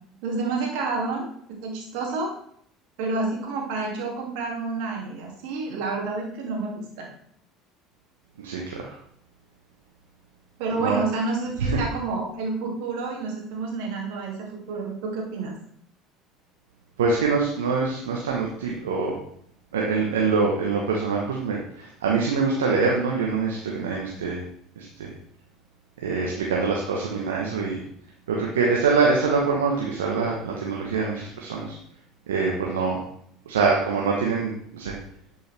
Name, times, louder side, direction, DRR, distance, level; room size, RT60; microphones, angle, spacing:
voice 1, 0.2-2.3 3.0-7.1 10.6-15.6, right 3 dB, 70° right, -1 dB, 2.4 m, -29 dB
voice 2, 8.4-8.9 10.8-11.0 11.7-11.8 17.0-19.2 19.7-24.4 24.8-25.1 26.0-27.8 28.3-31.8 32.3-33.0 33.5-34.9, right 4 dB, 85° right, -1 dB, 1.1 m, -24 dB
11.0 x 5.4 x 3.4 m, 0.66 s
hypercardioid pair, 75°, 0 cm